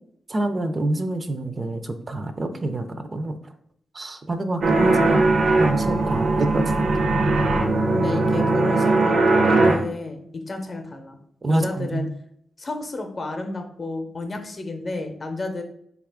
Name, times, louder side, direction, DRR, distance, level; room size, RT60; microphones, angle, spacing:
voice 1, 0.3-3.4 3.9-5.3 5.6-6.7 11.4-12.1, right 1 dB, 35° right, 8 dB, 0.4 m, -26 dB
sound 1, 4.6-9.8, right 2 dB, 75° right, 0.6 m, -19 dB
voice 2, 7.9-11.2 11.5-12.1 12.6-15.6, left 2 dB, 40° left, 5 dB, 0.6 m, -31 dB
3.9 x 2.4 x 3.5 m, 0.69 s
cardioid pair, 80°, 0 cm